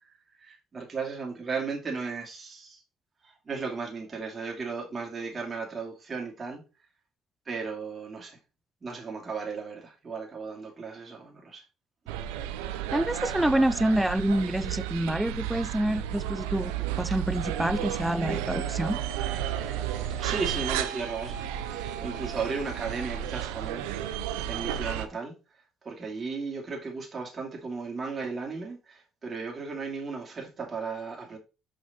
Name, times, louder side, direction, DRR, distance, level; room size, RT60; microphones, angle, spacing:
voice 1, 0.4-2.8 3.2-6.6 7.5-8.4 8.8-11.6 20.2-23.8 24.5-25.3 25.8-31.4, right 4 dB, 35° right, 2.4 m, -35 dB
sound 1, 12.1-25.1, right 11 dB, 90° right, 0.5 m, -33 dB
voice 2, 12.9-19.0, right 1 dB, 5° right, 0.5 m, -27 dB
sound 2, 17.5-25.0, right 5 dB, 60° right, 1.5 m, -44 dB
5.9 x 5.5 x 4.1 m
supercardioid pair, 70°, 0 cm